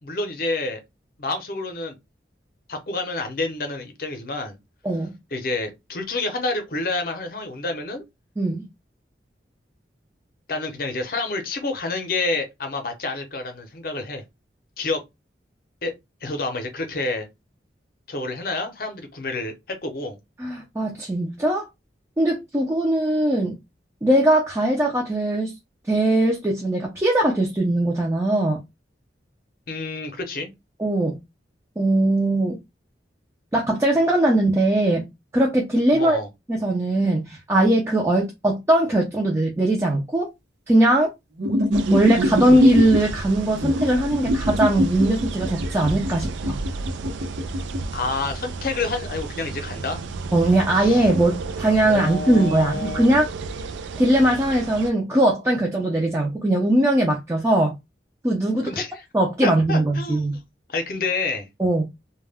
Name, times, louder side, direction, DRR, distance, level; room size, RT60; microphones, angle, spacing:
voice 1, 0.0-0.8 1.2-2.0 2.7-4.6 5.3-8.0 10.5-14.2 14.8-15.0 15.8-15.9 16.2-17.3 18.1-20.2 29.7-30.5 35.9-36.3 47.9-50.0 50.7-51.1 51.9-53.1 58.6-59.0 59.4-60.4 60.7-61.5, left 3 dB, 50° left, 0.7 m, -28 dB
voice 2, 4.8-5.2 8.4-8.7 20.4-21.7 22.2-23.6 24.0-25.5 25.9-28.6 30.8-31.2 31.8-32.6 33.5-35.1 35.3-36.2 36.5-40.3 40.7-41.1 41.9-46.6 50.3-53.3 54.0-57.7 58.2-58.7 59.1-60.4 61.6-61.8, right 1 dB, 15° right, 0.4 m, -20 dB
sound 1, 41.4-43.0 43.6-47.8, left 1 dB, 70° right, 0.8 m, -22 dB
sound 2, 41.7-54.9, right 3 dB, 85° right, 0.3 m, -33 dB
2.2 x 2.1 x 3.4 m
head